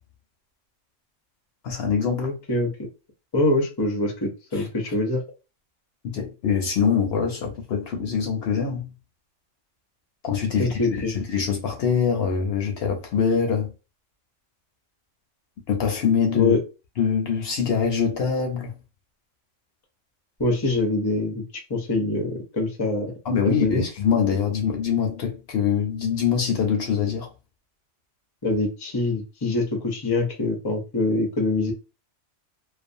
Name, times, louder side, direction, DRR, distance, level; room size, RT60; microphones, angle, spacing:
voice 1, 1.6-2.3 4.5-4.7 6.0-8.9 10.2-13.7 15.7-16.5 17.0-18.7 23.2-27.3, left 6 dB, 60° left, 0.8 m, -24 dB
voice 2, 2.2-2.7 3.3-5.2 10.6-11.1 16.3-16.6 20.4-21.4 21.7-23.1 23.4-23.8 28.4-31.7, left 2 dB, 30° left, 0.5 m, -24 dB
2.4 x 2.3 x 2.5 m
omnidirectional pair, 1.3 m